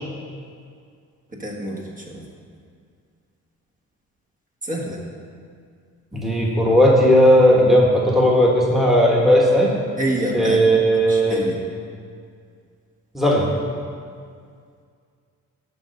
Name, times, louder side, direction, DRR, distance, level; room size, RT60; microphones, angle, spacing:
voice 1, 1.3-2.3 4.6-5.0 10.0-10.7 11.1-11.6, right 1 dB, 25° right, -2 dB, 1.5 m, -27 dB
voice 2, 6.1-9.7 10.3-11.4 13.1-13.5, equal, ahead, -3 dB, 1.4 m, -16 dB
11.0 x 3.9 x 6.6 m, 2.2 s
cardioid pair, 90°, 30 cm